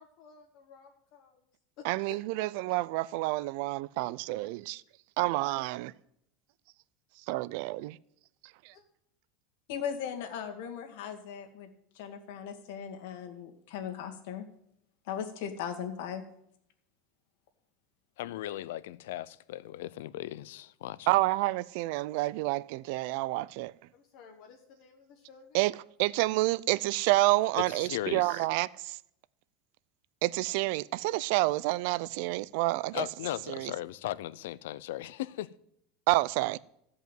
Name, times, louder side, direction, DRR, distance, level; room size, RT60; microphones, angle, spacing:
voice 1, 0.0-1.4 1.8-2.8 8.7-8.8 23.9-25.6, left 5 dB, 50° left, 1.4 m, -53 dB
voice 2, 1.8-4.8 5.2-5.9 7.3-8.0 21.1-23.7 25.5-29.0 30.2-33.0 33.5-33.7 36.1-36.6, right 19 dB, 55° right, 0.4 m, -29 dB
voice 3, 9.7-11.7 12.0-14.5 15.1-16.2, left 8 dB, 65° left, 2.0 m, -38 dB
voice 4, 18.2-21.1 27.6-28.5 32.9-35.5, left 14 dB, 80° left, 0.5 m, -37 dB
14.0 x 5.4 x 9.0 m
supercardioid pair, 160°, 0 cm